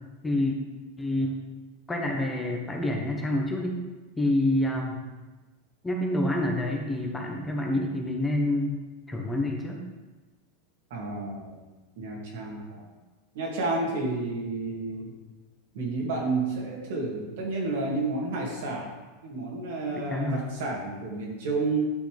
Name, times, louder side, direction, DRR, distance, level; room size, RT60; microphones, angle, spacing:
voice 1, 0.2-0.6 1.0-1.4 1.9-3.8 4.2-5.0 5.8-8.8 9.1-9.8 20.1-20.4, left 1 dB, 10° left, 0 dB, 1.1 m, -27 dB
voice 2, 10.9-11.6 12.0-12.8 13.3-15.1 15.7-18.9 19.2-21.9, right 3 dB, 75° right, -2 dB, 2.6 m, -30 dB
9.7 x 5.9 x 3.4 m, 1.2 s
supercardioid pair, 145°, 0 cm